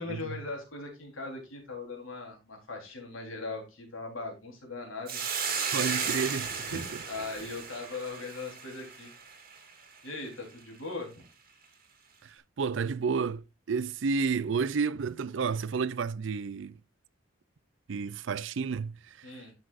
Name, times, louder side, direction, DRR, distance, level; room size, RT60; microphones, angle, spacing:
voice 1, 0.0-5.2 6.7-9.1 10.0-11.3 19.2-19.5, left 3 dB, 85° left, 3.7 m, -39 dB
Hiss, 5.1-9.6, right 5 dB, 45° right, 1.9 m, -34 dB
voice 2, 5.7-7.0 12.2-16.8 17.9-19.4, right 5 dB, 65° right, 0.4 m, -31 dB
12.0 x 6.1 x 2.5 m
head